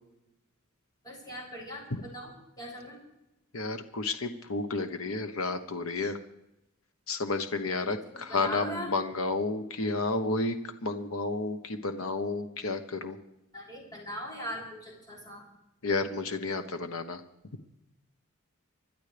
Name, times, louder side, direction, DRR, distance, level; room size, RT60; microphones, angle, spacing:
voice 1, 1.0-2.3 2.6-3.0 8.3-8.9 13.5-15.4, equal, 20° left, -4 dB, 6.9 m, -40 dB
voice 2, 3.5-6.2 7.1-13.2 15.8-17.2, left 3 dB, 80° left, 7 dB, 1.1 m, -31 dB
26.5 x 12.0 x 3.4 m, 0.89 s
head